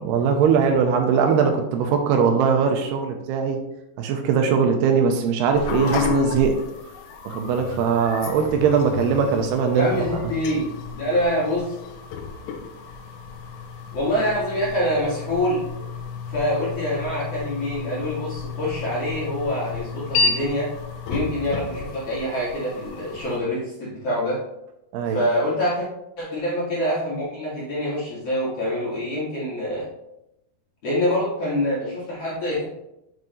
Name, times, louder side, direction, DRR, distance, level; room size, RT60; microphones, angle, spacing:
voice 1, 0.0-3.6 4.0-6.6 7.3-10.2 24.9-25.2, right 6 dB, 80° right, 4 dB, 2.6 m, -21 dB
sound 1, 5.5-23.4, left 5 dB, 85° left, 2.9 m, -31 dB
voice 2, 9.7-11.8 13.9-15.6 16.3-20.7 21.1-24.4 25.1-25.9 26.2-29.9 30.8-32.6, equal, 45° left, -8 dB, 2.3 m, -25 dB
7.7 x 5.4 x 3.1 m, 0.86 s
omnidirectional pair, 4.9 m